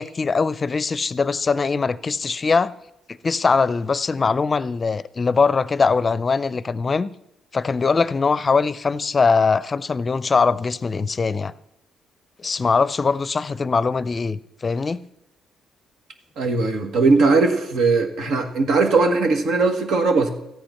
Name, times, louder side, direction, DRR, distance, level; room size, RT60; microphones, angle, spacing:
voice 1, 0.0-2.7 3.1-7.1 7.5-11.5 12.4-15.0, left 4 dB, 35° left, 0.5 m, -21 dB
voice 2, 16.4-20.3, right 3 dB, 80° right, 1.7 m, -19 dB
14.0 x 8.8 x 5.8 m
cardioid pair, 90°, 0 cm